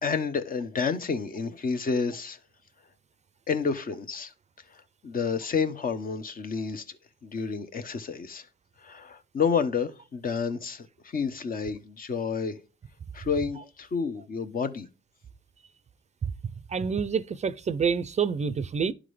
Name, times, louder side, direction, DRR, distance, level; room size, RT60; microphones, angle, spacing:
voice 1, 0.0-2.4 3.5-4.3 5.0-6.8 7.2-8.5 8.8-12.6 13.1-14.9, left 5 dB, 45° left, 1.0 m, -30 dB
voice 2, 16.7-18.9, right 6 dB, 35° right, 0.5 m, -27 dB
11.0 x 3.8 x 3.2 m
cardioid pair, 90°, 20 cm